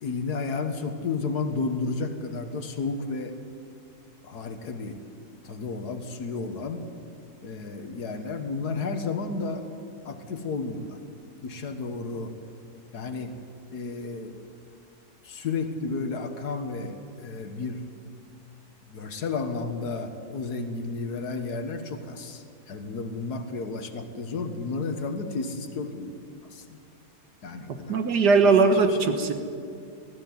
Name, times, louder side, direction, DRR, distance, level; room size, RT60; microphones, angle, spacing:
voice 1, 0.0-3.4 4.2-5.0 5.4-6.8 7.4-9.7 10.1-11.0 11.4-12.4 12.9-13.4 13.7-14.5 15.2-17.9 18.9-26.2 26.5-26.7 27.4-28.0 28.4-29.1, left 4 dB, 75° left, 7 dB, 2.0 m, -32 dB
voice 2, 27.7-29.3, right 4 dB, 90° right, 7 dB, 2.1 m, -20 dB
21.0 x 14.5 x 9.6 m, 2.4 s
omnidirectional pair, 1.7 m